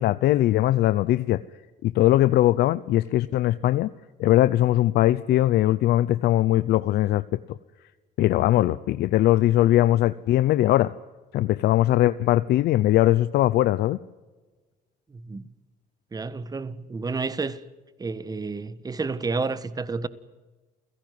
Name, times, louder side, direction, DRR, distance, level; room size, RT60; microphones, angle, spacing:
voice 1, 0.0-1.4 1.8-3.9 4.2-7.6 8.2-10.9 11.3-14.0, left 14 dB, 75° left, 0.7 m, -20 dB
voice 2, 15.1-15.4 16.1-17.6 18.0-20.1, right 4 dB, 20° right, 1.5 m, -30 dB
29.5 x 17.0 x 9.5 m
cardioid pair, 110°, 17 cm